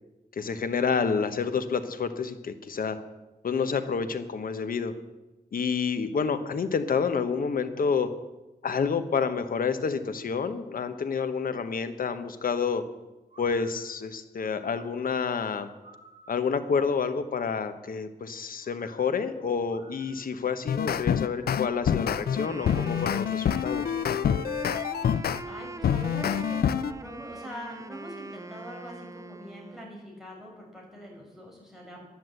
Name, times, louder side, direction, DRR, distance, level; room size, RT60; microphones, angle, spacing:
voice 1, 0.4-3.0 3.4-4.9 5.5-8.1 8.6-12.8 13.4-15.7 16.3-23.8, left 5 dB, 65° left, 10 dB, 1.1 m, -29 dB
sound 1, 13.3-16.6 18.6-21.7, right 2 dB, 45° right, 3.2 m, -54 dB
sound 2, 20.5-25.4 25.8-26.9, left 8 dB, 85° left, 0.5 m, -26 dB
Wind instrument woodwind instrument, 22.2-30.0, right 3 dB, 20° right, 0.5 m, -41 dB
voice 2, 24.8-32.0, equal, ahead, -2 dB, 5.1 m, -44 dB
11.5 x 10.5 x 7.8 m, 1.1 s
wide cardioid pair, 120°, 16 cm